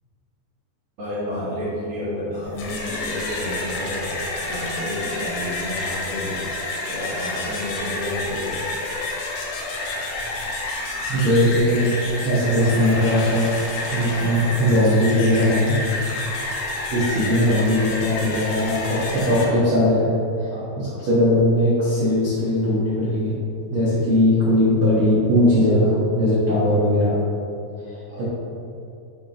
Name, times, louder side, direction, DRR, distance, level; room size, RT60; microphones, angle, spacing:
voice 1, 1.0-6.6 6.8-8.7 20.5-20.8 28.1-28.2, left 1 dB, 60° right, -10 dB, 2.0 m, -30 dB
sound 1, 2.4-19.4, left 2 dB, 75° left, 2.7 m, -29 dB
voice 2, 11.1-13.5 13.9-15.8 16.9-20.1 20.4-23.3 23.7-27.2 27.9-28.2, left 1 dB, 80° right, -10 dB, 1.2 m, -19 dB
9.8 x 5.7 x 3.0 m, 2.6 s
omnidirectional pair, 5.0 m